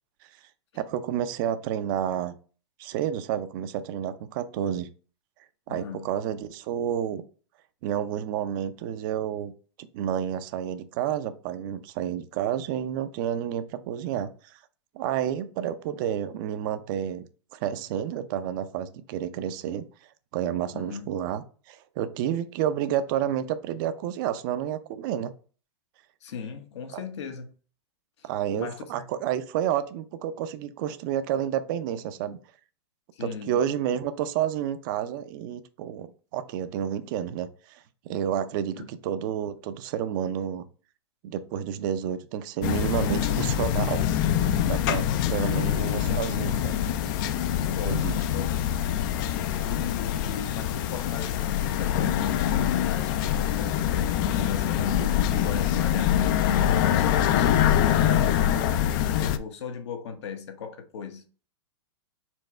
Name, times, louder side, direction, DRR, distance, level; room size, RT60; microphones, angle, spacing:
voice 1, 0.8-2.3 2.8-4.9 5.7-7.2 7.8-9.5 9.8-14.6 14.9-17.3 17.5-19.8 20.3-25.3 26.9-27.0 28.2-32.4 33.2-40.7 41.2-44.2 44.6-45.0 45.3-46.8 47.8-48.1, right 10 dB, 45° right, 0.5 m, -30 dB
voice 2, 5.7-6.1 20.7-21.1 26.2-27.5 28.2-28.3 28.5-29.1 33.1-33.5 38.8-38.9 44.9-45.8 47.5-48.5 49.6-56.2 56.7-61.2, left 7 dB, 70° left, 1.0 m, -38 dB
sound 1, 42.6-59.4, left 10 dB, 45° left, 0.4 m, -24 dB
4.4 x 2.3 x 4.2 m
hypercardioid pair, 135°, 15 cm